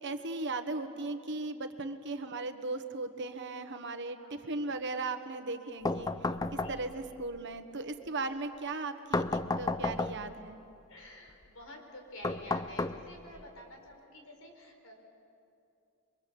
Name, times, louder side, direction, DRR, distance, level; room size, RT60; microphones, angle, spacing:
voice 1, 0.0-6.1 6.5-10.6, right 3 dB, 60° right, 8 dB, 1.4 m, -37 dB
sound 1, 5.8-7.1 9.1-10.4 12.2-13.4, left 2 dB, 20° left, 0.6 m, -33 dB
voice 2, 6.1-7.1 10.9-14.9, left 1 dB, 85° left, 2 dB, 4.9 m, -51 dB
28.5 x 23.5 x 7.1 m, 2.6 s
head